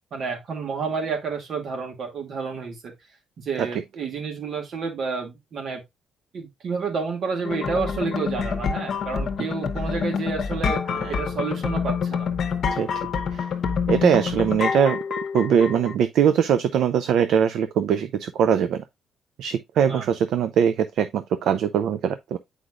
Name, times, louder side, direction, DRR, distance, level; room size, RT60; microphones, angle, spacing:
voice 1, 0.1-2.9 3.4-5.8 6.3-10.8 11.1-12.3 19.8-20.1, right 5 dB, 60° right, 2.3 m, -30 dB
sound 1, 7.4-15.9, left 6 dB, 60° left, 1.0 m, -27 dB
voice 2, 13.9-15.0 15.3-18.8 19.4-22.4, right 8 dB, 75° right, 0.5 m, -22 dB
8.0 x 4.9 x 2.4 m
cardioid pair, 90°, 0 cm